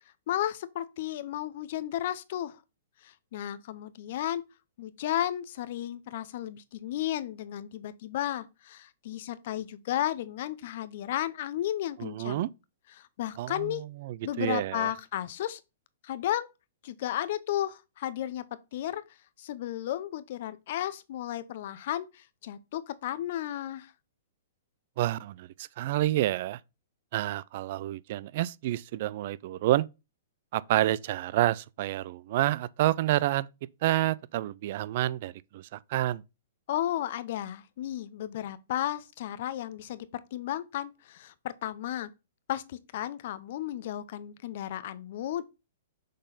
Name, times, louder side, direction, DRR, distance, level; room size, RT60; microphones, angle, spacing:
voice 1, 0.3-2.6 3.0-4.4 4.8-12.5 12.9-13.8 14.2-15.6 16.0-16.5 16.8-18.4 18.7-19.0 19.4-23.9 36.7-42.1 42.5-45.4, left 12 dB, 60° left, 0.6 m, -33 dB
voice 2, 12.0-12.5 13.4-14.9 25.0-26.6 27.1-29.9 30.5-33.5 33.8-36.2, right 15 dB, 55° right, 0.3 m, -29 dB
6.4 x 4.0 x 3.9 m
hypercardioid pair, 125°, 0 cm